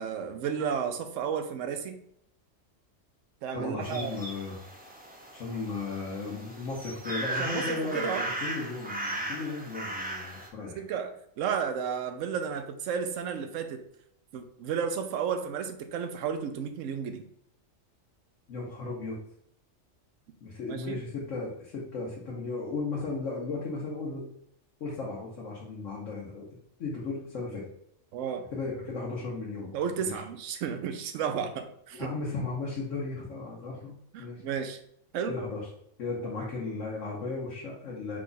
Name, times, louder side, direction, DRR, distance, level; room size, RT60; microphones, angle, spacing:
voice 1, 0.0-2.0 3.4-4.2 7.4-8.3 10.8-13.8 14.3-17.2 20.7-21.0 28.1-28.5 29.7-32.1 34.1-34.8 35.1-35.4, right 7 dB, 75° right, 8 dB, 0.9 m, -32 dB
voice 2, 3.5-4.6 5.3-10.8 18.5-19.2 20.4-24.2 24.8-26.5 26.8-27.7 28.5-30.2 31.9-33.9 34.2-34.4 35.3-35.6 36.0-38.2, left 3 dB, 70° left, -5 dB, 1.3 m, -35 dB
sound 1, 3.8-10.5, right 2 dB, 15° right, 0.3 m, -37 dB
4.7 x 2.3 x 3.9 m, 0.70 s
omnidirectional pair, 1.4 m